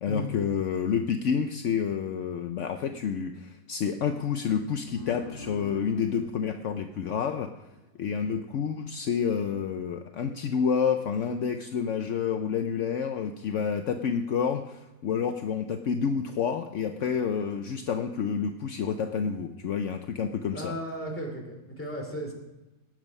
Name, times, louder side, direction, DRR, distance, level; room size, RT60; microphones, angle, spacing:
voice 1, 0.0-7.5 8.0-20.7, left 7 dB, 65° left, 7 dB, 0.7 m, -29 dB
sound 1, 4.9-8.0, left 3 dB, 30° left, 1.8 m, -45 dB
voice 2, 20.5-22.3, left 1 dB, 5° left, 1 dB, 2.9 m, -35 dB
18.5 x 7.5 x 5.4 m, 1.0 s
omnidirectional pair, 2.0 m